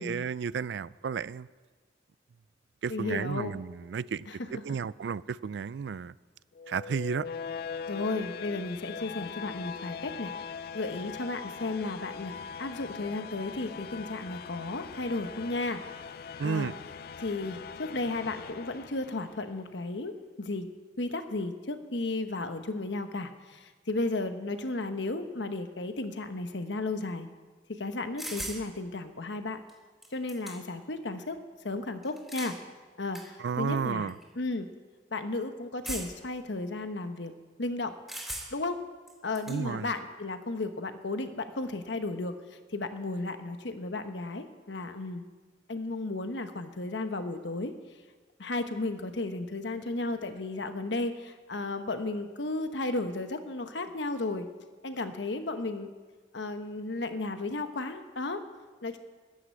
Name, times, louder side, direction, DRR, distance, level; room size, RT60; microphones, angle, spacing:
voice 1, 0.0-1.5 2.8-6.1 6.7-7.3 16.4-16.7 33.4-34.2 39.5-39.9, right 6 dB, 70° right, 0.4 m, -32 dB
voice 2, 2.9-3.5 4.3-4.5 7.9-10.3 10.7-15.8 16.4-16.7 17.2-20.7 21.0-27.3 27.7-29.6 30.1-31.4 31.6-32.6 33.0-34.7 35.1-37.3 37.6-37.9 38.5-38.8 39.2-45.2 45.7-47.7 48.4-54.5 54.8-55.9 56.3-58.4 58.8-59.0, left 2 dB, 80° left, 1.1 m, -34 dB
sound 1, 6.5-19.5, left 6 dB, 55° left, 0.4 m, -41 dB
sound 2, 28.2-28.6 29.7-29.8 30.0-30.8 32.0-32.6 33.1-33.2 34.1-34.2 35.8-36.3 38.1-38.7 39.1-39.6, right 1 dB, ahead, 3.0 m, -38 dB
11.5 x 10.5 x 7.7 m
head